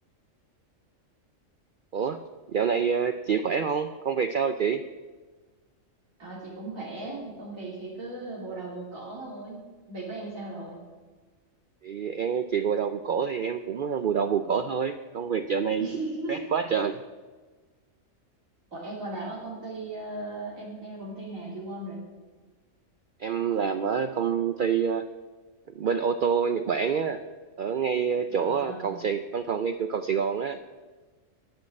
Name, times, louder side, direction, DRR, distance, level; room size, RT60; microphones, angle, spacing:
voice 1, 2.5-4.8 11.8-15.9 16.3-17.0 23.2-25.1 25.7-27.2 27.6-30.6, right 6 dB, 60° right, 10 dB, 0.5 m, -27 dB
voice 2, 6.2-10.8 15.8-16.4 18.7-22.0 28.3-29.0, right 2 dB, 80° right, -6 dB, 3.2 m, -37 dB
13.0 x 6.4 x 8.5 m, 1.3 s
omnidirectional pair, 1.4 m